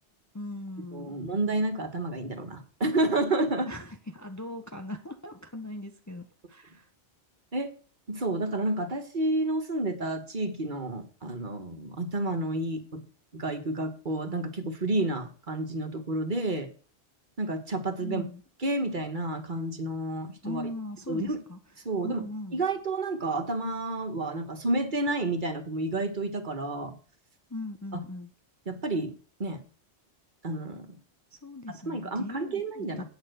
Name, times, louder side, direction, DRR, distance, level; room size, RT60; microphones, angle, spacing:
voice 1, 0.3-1.2 3.7-6.9 18.0-18.4 20.4-21.6 22.0-22.6 27.5-28.3 31.3-33.0, left 1 dB, 20° left, 6 dB, 0.7 m, -39 dB
voice 2, 0.9-3.7 7.5-7.7 8.1-13.0 13.3-16.7 17.4-18.2 18.6-20.6 21.1-21.4 21.8-22.3 22.5-26.9 28.7-29.1 29.4-29.6 30.4-31.0 31.9-33.0, right 2 dB, 45° right, 6 dB, 1.4 m, -30 dB
8.9 x 5.5 x 7.9 m, 0.39 s
omnidirectional pair, 1.1 m